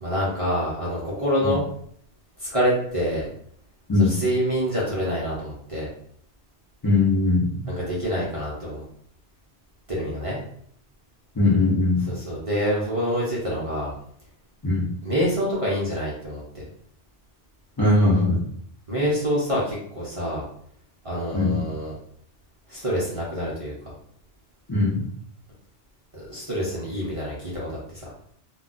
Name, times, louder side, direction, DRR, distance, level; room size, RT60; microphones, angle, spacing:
voice 1, 0.0-1.6 2.4-3.3 4.0-5.9 7.7-8.8 9.9-10.4 12.1-13.9 15.0-16.6 18.9-20.4 21.0-21.9 22.7-23.7 26.1-28.1, equal, 35° right, -6 dB, 0.7 m, -26 dB
voice 2, 6.8-7.7 11.3-12.1 14.6-14.9 17.8-18.4 21.3-21.6 24.7-25.0, left 2 dB, 25° left, -7 dB, 0.6 m, -20 dB
2.3 x 2.2 x 3.8 m, 0.66 s
omnidirectional pair, 1.2 m